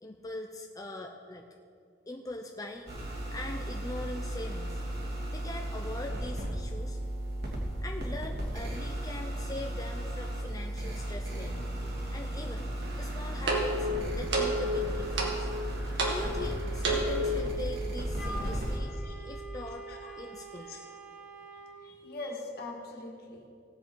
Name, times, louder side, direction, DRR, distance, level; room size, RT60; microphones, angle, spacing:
voice 1, 0.0-1.5 2.1-3.0 3.3-4.8 5.3-7.0 7.8-11.7 12.1-12.7 13.0-13.9 14.1-15.5 16.0-18.9 19.2-19.8 20.2-20.7 21.8-22.0, left 2 dB, 20° left, 3 dB, 0.6 m, -41 dB
sound 1, 2.9-18.8, right 1 dB, 60° right, 2.9 m, -35 dB
sound 2, 12.8-17.4, right 1 dB, 80° right, 2.0 m, -31 dB
Wind instrument woodwind instrument, 18.2-21.8, right 2 dB, 5° right, 2.5 m, -45 dB
voice 2, 21.8-23.5, left 2 dB, 60° left, 0 dB, 2.0 m, -42 dB
18.0 x 7.9 x 4.6 m, 2.4 s
head